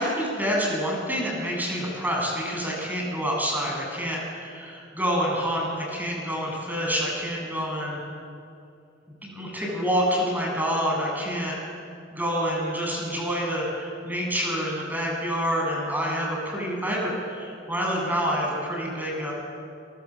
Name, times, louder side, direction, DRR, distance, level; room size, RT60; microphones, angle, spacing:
voice 1, 0.0-8.0 9.2-11.5 12.1-19.3, equal, 10° right, -2 dB, 7.8 m, -27 dB
29.0 x 24.5 x 7.3 m, 2.5 s
head